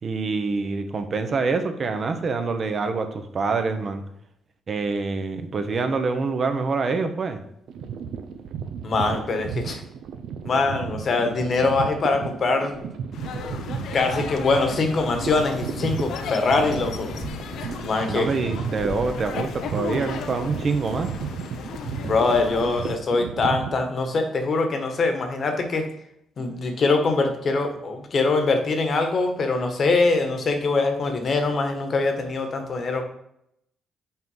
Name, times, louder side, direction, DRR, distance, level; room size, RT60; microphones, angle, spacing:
voice 1, 0.0-4.0 4.7-7.4 18.1-21.1, right 4 dB, 45° right, 7 dB, 1.0 m, -26 dB
sound 1, 7.7-23.8, right 7 dB, 75° right, 0.7 m, -34 dB
voice 2, 8.8-9.8 10.4-12.9 13.9-17.1 17.8-18.3 22.0-25.9 26.4-33.0, left 3 dB, 50° left, 6 dB, 1.4 m, -23 dB
sound 2, 13.1-23.0, left 6 dB, 75° left, 0.8 m, -35 dB
5.9 x 4.5 x 5.6 m, 0.75 s
cardioid pair, 90°, 0 cm